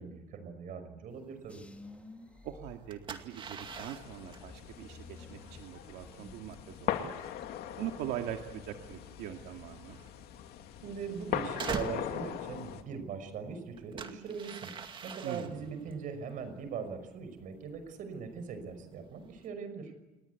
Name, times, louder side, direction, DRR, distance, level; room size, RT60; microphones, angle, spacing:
voice 1, 0.0-1.6 10.8-14.7 15.0-19.9, right 5 dB, 55° right, 9 dB, 5.9 m, -41 dB
sound 1, 1.1-19.5, right 6 dB, 30° right, 2.2 m, -47 dB
sound 2, 1.5-3.5 4.0-6.6 6.9-7.4, left 2 dB, 10° left, 2.2 m, -53 dB
voice 2, 2.4-7.5 7.8-10.0 15.2-15.6, right 11 dB, 90° right, 4 dB, 2.1 m, -42 dB
sound 3, 3.6-12.8, left 10 dB, 75° left, 2.6 m, -40 dB
29.5 x 20.5 x 8.4 m, 1.1 s
cardioid pair, 160°, 16 cm